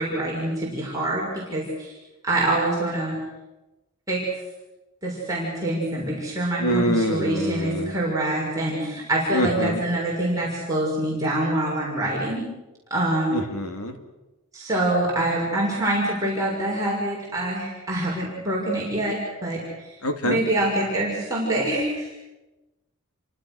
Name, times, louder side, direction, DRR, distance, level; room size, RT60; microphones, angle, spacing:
voice 1, 0.0-1.9 2.2-3.2 4.1-4.2 5.0-12.5 12.9-13.4 14.5-19.6 20.2-22.1, right 1 dB, 15° right, -5 dB, 6.6 m, -25 dB
voice 2, 6.6-7.9 9.3-9.8 13.3-14.0 20.0-20.4, equal, 75° left, 6 dB, 3.0 m, -25 dB
29.5 x 25.5 x 6.6 m, 1.0 s
head